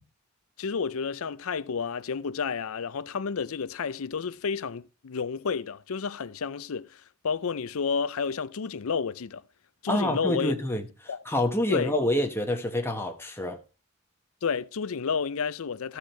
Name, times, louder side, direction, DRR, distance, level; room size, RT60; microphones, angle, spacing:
voice 1, 0.6-9.4 9.8-10.5 11.1-11.2 11.7-11.9 14.4-16.0, left 5 dB, 75° left, 0.5 m, -31 dB
voice 2, 9.9-10.9 11.2-13.6, left 1 dB, 10° left, 1.3 m, -27 dB
14.5 x 4.9 x 4.5 m
head